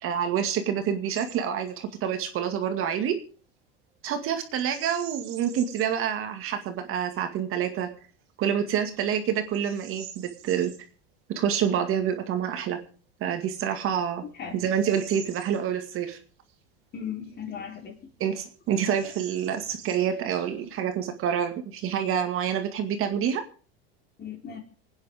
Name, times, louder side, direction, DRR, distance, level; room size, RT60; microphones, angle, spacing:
voice 1, 0.0-3.2 4.0-7.9 8.4-10.7 11.3-12.8 13.2-14.3 14.5-16.2 18.2-23.4, right 8 dB, 45° right, 6 dB, 2.2 m, -27 dB
Bird vocalization bird call bird song, 1.1-1.4 1.7-2.0 4.5-6.0 6.6-6.7 7.3-7.7 8.3-8.4 8.9-10.8 12.9-13.0 13.7-16.1 16.5-16.6 17.2-18.0 18.3-18.4 18.7-20.8, right 10 dB, 85° right, 3.1 m, -47 dB
voice 2, 14.4-14.7 16.9-18.0 24.2-24.6, left 7 dB, 35° left, 3 dB, 3.9 m, -37 dB
27.0 x 9.6 x 3.7 m, 0.39 s
supercardioid pair, 120°, 30 cm